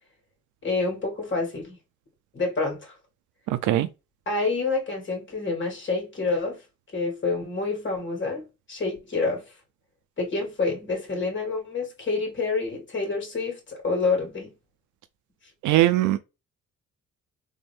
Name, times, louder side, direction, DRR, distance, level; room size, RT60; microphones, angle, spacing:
voice 1, 0.6-1.8 2.3-3.0 4.3-6.6 6.9-9.4 10.2-14.5, left 3 dB, 40° left, 2.3 m, -28 dB
voice 2, 3.5-3.9 15.6-16.2, right 14 dB, 80° right, 0.5 m, -20 dB
3.5 x 2.6 x 3.3 m
cardioid pair, 90°, 30 cm